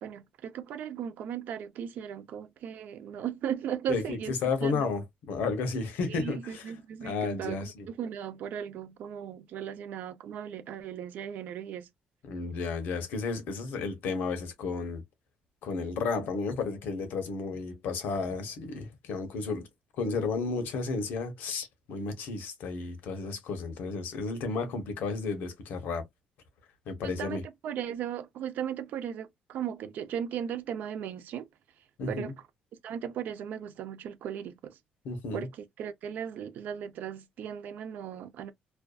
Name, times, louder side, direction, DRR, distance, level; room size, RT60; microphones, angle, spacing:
voice 1, 0.0-4.3 4.6-4.9 6.1-11.9 27.0-31.5 32.1-32.3 32.8-34.8 35.3-38.5, right 9 dB, 70° right, 0.5 m, -37 dB
voice 2, 3.9-6.6 7.0-7.9 12.2-15.0 15.6-19.7 20.0-26.0 26.9-27.4 32.0-32.3 35.0-35.5, left 4 dB, 85° left, 0.8 m, -32 dB
2.5 x 2.3 x 2.3 m
cardioid pair, 145°, 3 cm